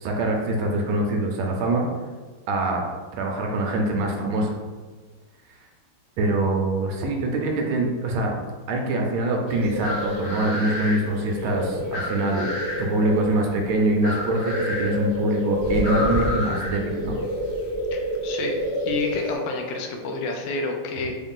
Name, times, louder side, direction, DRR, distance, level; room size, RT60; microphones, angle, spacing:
voice 1, 0.0-1.8 2.5-2.8 3.2-4.6 6.2-8.4 8.7-12.5 12.8-17.1, right 1 dB, 75° right, 1 dB, 1.4 m, -24 dB
sound 1, 9.5-19.4, equal, 50° left, 0.7 m, -28 dB
voice 2, 17.9-18.6 18.9-21.2, left 3 dB, 85° left, 2 dB, 1.5 m, -29 dB
4.1 x 2.4 x 3.6 m, 1.4 s
omnidirectional pair, 2.4 m